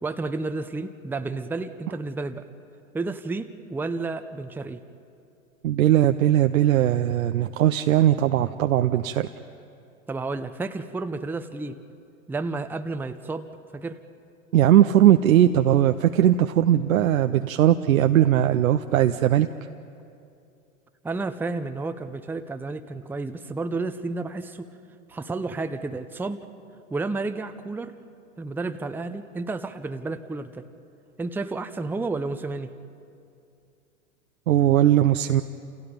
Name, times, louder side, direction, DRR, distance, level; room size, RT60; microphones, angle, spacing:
voice 1, 0.0-2.5 2.9-4.8 10.1-11.8 12.3-14.0 21.0-24.7 25.1-26.4 26.9-27.9 28.4-30.7 31.2-32.7, right 3 dB, 5° right, 9 dB, 0.7 m, -31 dB
voice 2, 5.6-9.3 14.5-19.5 34.5-35.4, right 11 dB, 75° right, 8 dB, 0.8 m, -19 dB
29.0 x 28.5 x 5.2 m, 2.5 s
hypercardioid pair, 100°, 42 cm